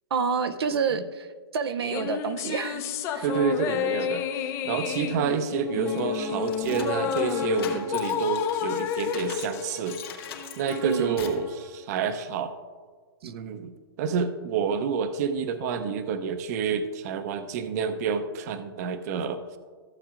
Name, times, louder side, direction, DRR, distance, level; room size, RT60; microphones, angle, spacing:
voice 1, 0.1-1.3 1.5-2.9 3.1-3.3 10.8-11.2 13.2-13.3, right 5 dB, 80° right, 9 dB, 0.6 m, -28 dB
sound 1, 1.8-10.4, left 8 dB, 20° left, 0.5 m, -30 dB
voice 2, 3.2-4.3 4.6-10.0 10.6-12.5 13.2-13.7 14.0-19.6, right 6 dB, 40° right, 9 dB, 0.7 m, -28 dB
sound 2, 5.4-11.7, left 3 dB, 40° left, 1.3 m, -39 dB
sound 3, 6.0-9.6 9.9-11.5, left 7 dB, 70° left, 2.2 m, -42 dB
14.5 x 7.8 x 2.5 m, 1.6 s
hypercardioid pair, 150°, 13 cm